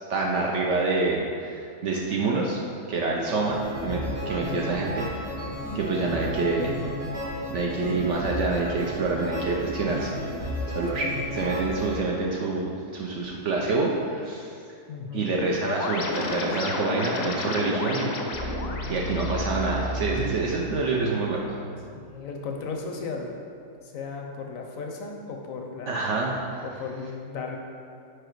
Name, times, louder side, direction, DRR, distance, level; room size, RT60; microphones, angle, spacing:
voice 1, 0.1-2.6 2.9-5.4 5.7-6.8 7.5-10.2 10.7-14.5 15.1-18.1 18.4-21.4 25.9-26.6, right 3 dB, 65° right, -2 dB, 0.7 m, -27 dB
sound 1, 3.4-12.0, equal, 85° right, 2.3 m, -33 dB
voice 2, 14.9-15.4 21.9-23.3 23.8-26.0 26.6-27.6, left 4 dB, 65° left, 2 dB, 0.9 m, -35 dB
sound 2, 15.6-20.6, left 3 dB, 85° left, 1.3 m, -32 dB
sound 3, 18.3-22.7 23.0-23.2, equal, 30° left, 0.3 m, -34 dB
4.8 x 4.8 x 4.5 m, 2.4 s
omnidirectional pair, 1.6 m